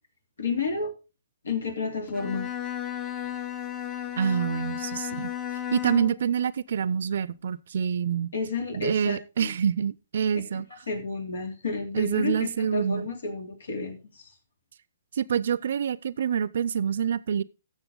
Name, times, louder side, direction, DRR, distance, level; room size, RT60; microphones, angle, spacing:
voice 1, 0.4-0.9 1.4-2.5 8.3-9.5 10.9-14.3, left 4 dB, 75° left, 3.1 m, -31 dB
Bowed string instrument, 2.1-6.3, left 10 dB, 20° left, 0.9 m, -34 dB
voice 2, 4.2-5.3 5.7-8.3 8.7-10.7 11.9-13.1 15.2-17.4, right 7 dB, 60° right, 0.6 m, -26 dB
13.5 x 6.8 x 3.8 m
hypercardioid pair, 135°, 0 cm